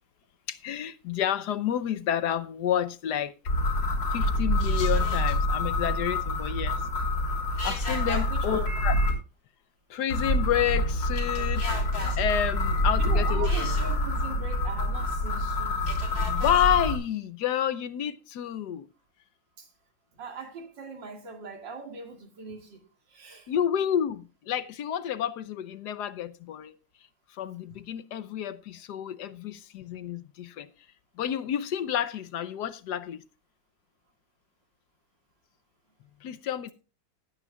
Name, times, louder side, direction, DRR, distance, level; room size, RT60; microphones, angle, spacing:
voice 1, 0.5-3.3 4.1-6.8 7.6-9.0 9.9-11.7 12.2-13.5 16.2-18.9 23.5-26.7 27.3-30.7 31.2-33.2 36.2-36.7, left 10 dB, 70° left, 1.2 m, -29 dB
sound 1, 3.5-9.1 10.1-17.0, left 1 dB, 85° left, 4.2 m, -26 dB
voice 2, 8.1-8.7 13.0-15.9 19.6-19.7 20.2-23.5, right 5 dB, 80° right, 2.8 m, -40 dB
19.0 x 9.1 x 2.3 m
omnidirectional pair, 2.0 m